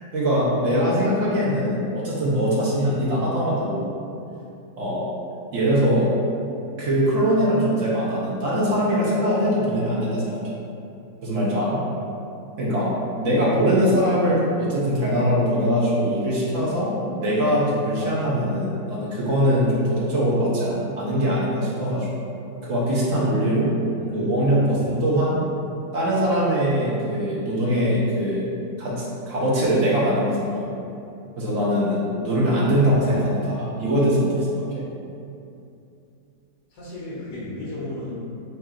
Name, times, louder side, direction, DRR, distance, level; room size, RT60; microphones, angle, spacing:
voice 1, 0.1-3.9 4.8-5.1 5.5-6.1 6.8-10.4 11.2-11.8 12.6-12.9 13.2-22.1 22.6-23.7 24.1-25.4 25.9-28.4 28.8-30.7 31.4-34.7, equal, 55° right, -7 dB, 1.0 m, -22 dB
voice 2, 23.9-24.6 32.7-33.0 36.7-38.1, left 2 dB, 75° left, -9 dB, 1.4 m, -35 dB
5.6 x 2.6 x 2.4 m, 2.7 s
omnidirectional pair, 2.0 m